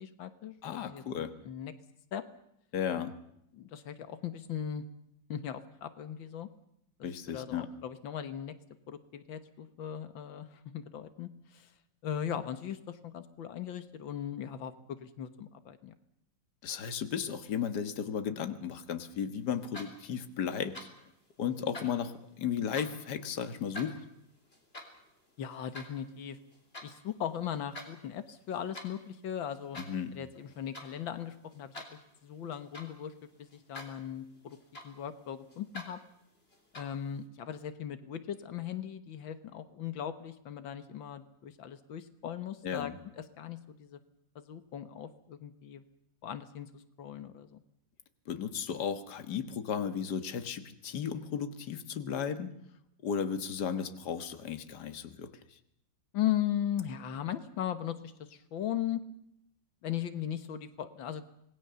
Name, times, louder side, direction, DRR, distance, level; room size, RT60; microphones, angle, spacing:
voice 1, 0.0-1.7 2.1-2.2 3.5-4.8 5.3-6.5 7.0-8.5 8.9-11.7 12.0-15.9 25.4-26.4 26.8-29.8 30.1-33.1 33.4-34.6 34.8-36.0 36.7-42.9 43.2-44.0 44.4-45.8 46.2-47.6 56.1-59.0 59.8-61.2, left 10 dB, 90° left, 12 dB, 2.0 m, -38 dB
voice 2, 0.6-1.4 2.7-3.1 7.0-7.7 16.6-20.8 21.4-24.0 29.8-30.1 42.6-42.9 48.3-52.5 53.0-55.4, left 7 dB, 60° left, 10 dB, 2.0 m, -35 dB
sound 1, 19.5-20.2 20.5-21.1 21.5-23.1 23.5-26.9 27.3-27.9 28.2-29.0 29.5-30.1 30.3-30.9 31.3-33.1 33.5-34.0 34.3-35.2 35.5-35.9 36.5-37.1, left 1 dB, 30° left, 3.9 m, -47 dB
26.5 x 19.5 x 6.9 m, 0.77 s
omnidirectional pair, 2.0 m